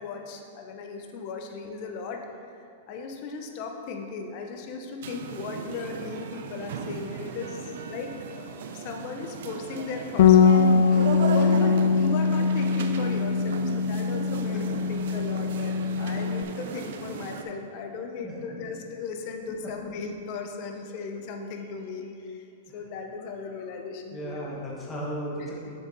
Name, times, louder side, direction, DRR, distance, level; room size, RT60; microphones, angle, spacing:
voice 1, 0.0-2.2 2.9-10.7 11.2-13.6 13.9-22.4 22.7-24.4, left 4 dB, 40° left, 4 dB, 0.8 m, -37 dB
sound 1, 5.0-17.4, right 6 dB, 65° right, 0.6 m, -36 dB
Bass guitar, 10.2-16.4, left 6 dB, 60° left, 0.4 m, -22 dB
voice 2, 10.9-11.7 13.3-13.9 14.5-14.6 18.2-18.6 19.6-19.9 22.7-22.8 24.1-25.8, equal, 15° left, -4 dB, 1.4 m, -37 dB
7.3 x 6.9 x 4.0 m, 2.3 s
supercardioid pair, 160°, 0 cm